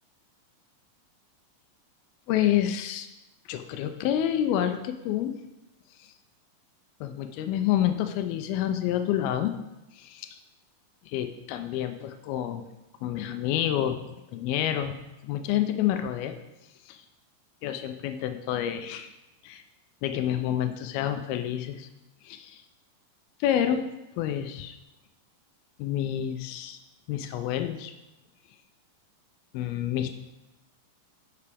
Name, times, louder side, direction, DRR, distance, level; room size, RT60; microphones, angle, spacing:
voice 1, 2.3-3.1 3.5-5.4 7.0-9.5 9.9-10.4 11.1-12.6 13.0-14.0 14.3-15.0 15.2-16.3 16.9-17.0 17.6-19.1 19.4-19.6 20.0-21.9 22.2-22.6 23.4-23.9 24.2-24.8 25.8-26.8 27.1-27.9 29.5-30.1, left 11 dB, 90° left, 8 dB, 2.5 m, -28 dB
11.5 x 5.6 x 3.5 m, 0.99 s
omnidirectional pair, 4.2 m